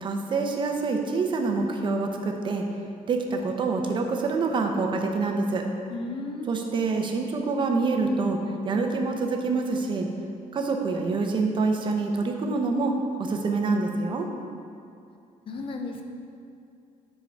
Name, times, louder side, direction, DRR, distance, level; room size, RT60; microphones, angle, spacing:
voice 1, 0.0-2.6 3.1-5.6 6.5-8.4 8.6-10.1 10.5-12.9 13.2-14.3, right 3 dB, 35° right, 3 dB, 0.7 m, -26 dB
voice 2, 5.9-6.5 15.5-16.0, left 2 dB, 40° left, 4 dB, 0.7 m, -34 dB
9.5 x 4.7 x 4.5 m, 2.5 s
cardioid pair, 165°, 14 cm